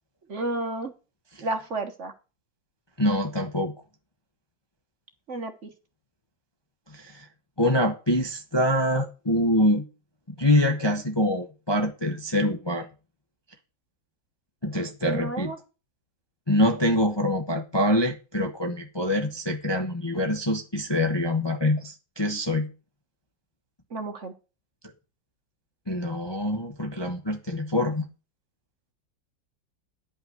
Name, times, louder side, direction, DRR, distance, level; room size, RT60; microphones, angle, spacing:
voice 1, 0.3-0.9 1.4-2.1 5.3-5.7 15.0-15.6 23.9-24.3, right 2 dB, 45° right, 1.4 m, -31 dB
voice 2, 3.0-3.7 6.9-7.2 7.6-9.8 10.4-12.9 14.6-15.5 16.5-22.7 25.9-28.1, left 1 dB, 20° left, 0.9 m, -25 dB
10.5 x 5.7 x 7.8 m
omnidirectional pair, 2.0 m